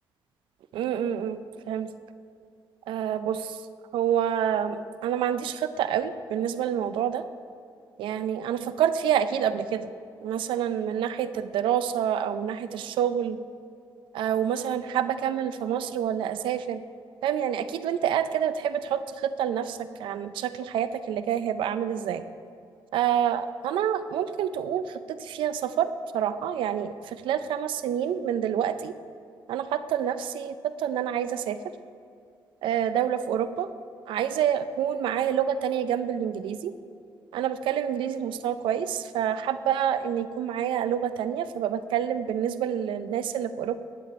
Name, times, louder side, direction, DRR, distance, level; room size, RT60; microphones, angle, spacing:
voice 1, 0.7-1.4 1.7-1.9 2.9-3.6 3.9-7.2 8.0-9.9 10.2-13.4 14.1-16.8 17.2-22.2 22.9-25.9 26.1-28.9 29.5-31.6 32.6-33.7 34.1-36.7 37.3-43.9, right 9 dB, 90° right, 12 dB, 0.5 m, -27 dB
11.5 x 8.6 x 4.2 m, 2.4 s
cardioid pair, 95°, 8 cm